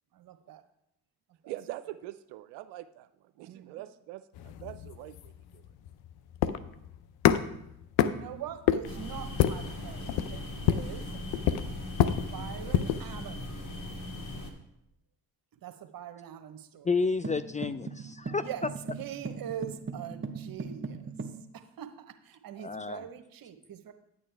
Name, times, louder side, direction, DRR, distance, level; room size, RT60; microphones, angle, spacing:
voice 1, 0.1-0.6 1.4-1.5 3.5-3.8 8.0-11.2 12.3-13.5 15.5-16.9 18.4-23.9, right 10 dB, 55° right, 9 dB, 1.1 m, -43 dB
voice 2, 1.5-5.6, right 15 dB, 80° right, 11 dB, 0.6 m, -43 dB
sound 1, 4.4-13.1, left 10 dB, 65° left, 0.7 m, -29 dB
sound 2, 8.8-14.5, left 1 dB, 45° left, 2.3 m, -39 dB
voice 3, 16.8-18.4 22.6-23.0, left 4 dB, 20° left, 12 dB, 0.3 m, -30 dB
sound 3, 17.2-21.4, right 4 dB, 30° right, 1.1 m, -39 dB
9.5 x 8.7 x 3.4 m, 0.80 s
hypercardioid pair, 50°, 41 cm